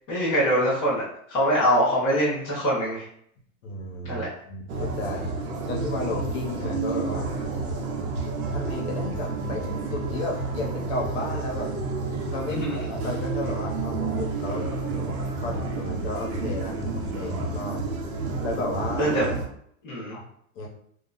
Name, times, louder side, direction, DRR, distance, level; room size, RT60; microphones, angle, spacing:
voice 1, 0.1-3.0 4.0-4.3 12.5-12.8 19.0-19.2 19.8-20.2, equal, 10° left, -12 dB, 0.4 m, -24 dB
voice 2, 3.6-5.3 5.7-7.3 8.5-11.7 12.3-14.7 15.4-17.8 18.4-19.1 20.1-20.2 20.5-20.7, left 2 dB, 50° left, -1 dB, 0.8 m, -33 dB
sound 1, 4.7-19.5, right 3 dB, 80° right, 0.8 m, -30 dB
2.3 x 2.0 x 3.7 m, 0.66 s
supercardioid pair, 165°, 43 cm